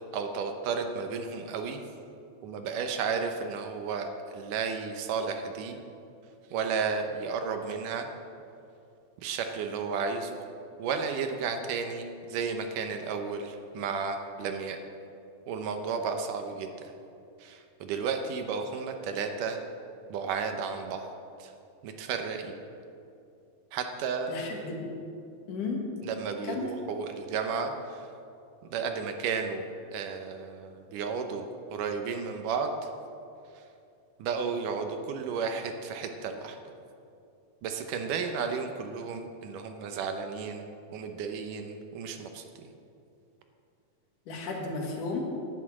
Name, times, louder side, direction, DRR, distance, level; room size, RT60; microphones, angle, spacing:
voice 1, 0.1-1.8 2.4-5.8 6.5-8.1 9.2-10.4 10.8-14.8 15.5-16.9 17.4-19.6 20.1-21.1 21.4-21.5 21.8-22.6 23.7-24.3 26.0-28.1 28.7-32.9 33.5-33.6 34.2-36.6 37.6-40.7 40.9-42.7, right 5 dB, 75° right, 6 dB, 2.4 m, -33 dB
voice 2, 24.3-24.9 25.5-25.9 26.4-26.7 44.3-45.3, left 3 dB, 70° left, 1 dB, 3.0 m, -33 dB
10.5 x 10.5 x 7.3 m, 2.5 s
omnidirectional pair, 3.9 m